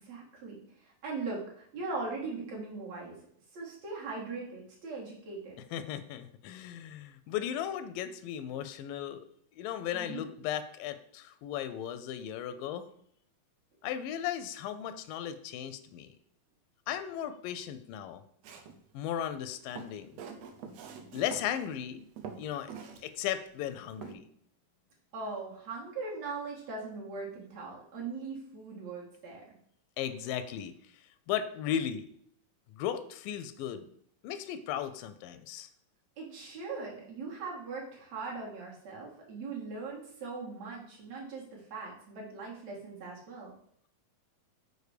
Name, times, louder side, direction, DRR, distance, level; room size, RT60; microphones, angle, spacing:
voice 1, 0.0-3.2 3.5-5.6 9.9-10.3 20.9-21.2 25.1-29.4 36.2-43.6, right 4 dB, 55° right, -3 dB, 2.6 m, -40 dB
voice 2, 5.7-9.2 9.6-12.9 13.8-16.1 16.9-18.2 18.9-20.1 21.1-22.1 22.4-22.7 23.0-24.2 30.0-30.7 31.3-32.1 32.8-33.9 34.2-35.7, left 10 dB, 85° left, 10 dB, 2.2 m, -36 dB
Walk footsteps, 18.4-18.8 19.5-21.5 21.8-21.9 22.2-23.0 23.3-23.4 24.0-24.1, right 6 dB, 80° right, 1.5 m, -45 dB
6.7 x 4.8 x 4.9 m, 0.64 s
omnidirectional pair, 3.9 m